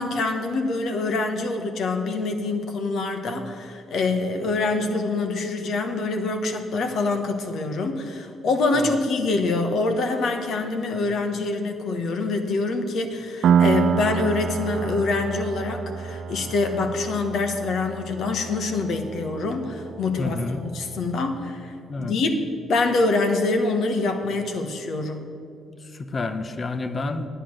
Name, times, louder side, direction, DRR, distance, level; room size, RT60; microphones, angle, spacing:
voice 1, 0.0-22.4 22.7-25.2, left 3 dB, 65° left, 5 dB, 1.2 m, -25 dB
Piano, 13.4-20.8, right 7 dB, 65° right, 0.5 m, -27 dB
voice 2, 20.2-20.6 21.9-22.2 25.8-27.3, left 3 dB, 35° left, 10 dB, 0.8 m, -29 dB
9.2 x 8.7 x 6.4 m, 2.5 s
cardioid pair, 90°, 0 cm